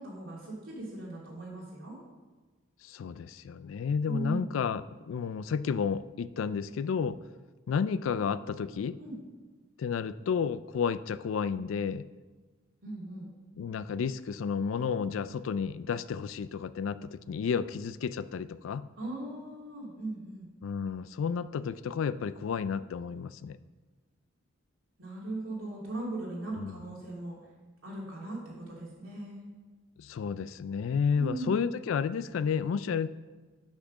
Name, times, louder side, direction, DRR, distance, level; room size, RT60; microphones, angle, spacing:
voice 1, 0.0-2.0 4.0-4.5 9.0-9.2 12.8-13.3 19.0-20.5 25.0-27.3 27.8-29.4 31.1-31.5, right 2 dB, 90° right, -4 dB, 2.7 m, -38 dB
voice 2, 2.8-7.2 7.7-9.0 9.8-12.1 13.6-18.9 20.6-23.6 26.6-26.8 30.0-33.1, left 6 dB, 70° left, 16 dB, 0.3 m, -31 dB
6.4 x 6.0 x 6.3 m, 1.3 s
head